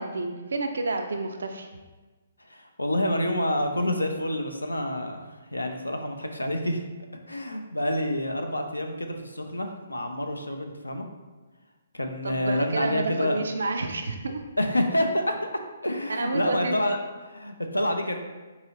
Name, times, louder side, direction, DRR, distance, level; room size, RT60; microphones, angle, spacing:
voice 1, 0.0-1.7 12.2-14.4 16.1-16.8, right 3 dB, 65° right, 5 dB, 0.3 m, -29 dB
voice 2, 2.4-6.9 7.3-11.0 11.9-13.4 14.6-15.5 15.8-18.2, left 1 dB, 85° left, 5 dB, 0.4 m, -28 dB
4.7 x 2.8 x 2.9 m, 1.3 s
figure-of-eight pair, 130°, 0 cm